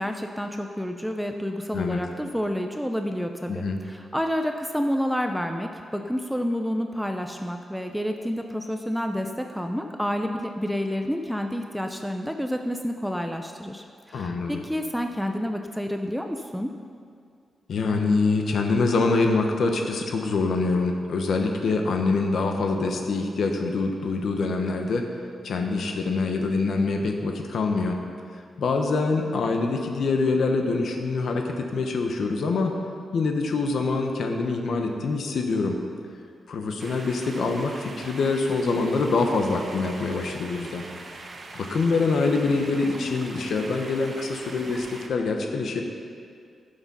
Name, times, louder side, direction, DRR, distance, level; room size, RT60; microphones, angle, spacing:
voice 1, 0.0-16.7, equal, ahead, 4 dB, 0.5 m, -29 dB
voice 2, 3.5-3.8 14.1-14.6 17.7-25.1 25.4-28.0 28.6-32.7 33.1-35.8 36.5-40.8 41.5-45.8, left 3 dB, 70° left, 3 dB, 1.1 m, -25 dB
sound 1, 36.8-45.1, right 2 dB, 40° right, 1.1 m, -42 dB
15.0 x 7.1 x 5.5 m, 2.3 s
wide cardioid pair, 130°, 0 cm